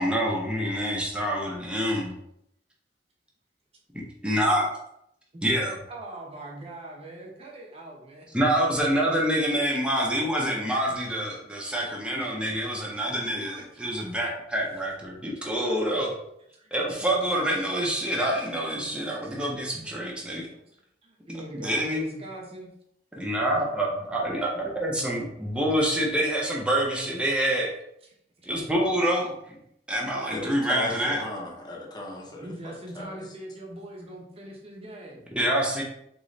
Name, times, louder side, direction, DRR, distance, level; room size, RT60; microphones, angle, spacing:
voice 1, 0.0-2.1 3.9-4.7 5.4-5.7 8.3-16.1 16.7-20.5 21.5-22.0 23.2-27.7 28.4-29.6 29.9-31.2 35.3-35.8, right 1 dB, 5° right, -3 dB, 0.7 m, -26 dB
voice 2, 5.3-8.3 8.9-9.6 13.1-14.2 15.3-15.5 16.5-16.7 19.2-19.3 19.9-20.0 20.7-22.7 23.8-23.9 27.2-27.3 28.4-28.5 32.2-35.2, right 1 dB, 35° right, -1 dB, 0.9 m, -42 dB
voice 3, 30.3-33.2, left 1 dB, 25° left, -2 dB, 0.9 m, -36 dB
3.9 x 3.0 x 3.2 m, 0.76 s
head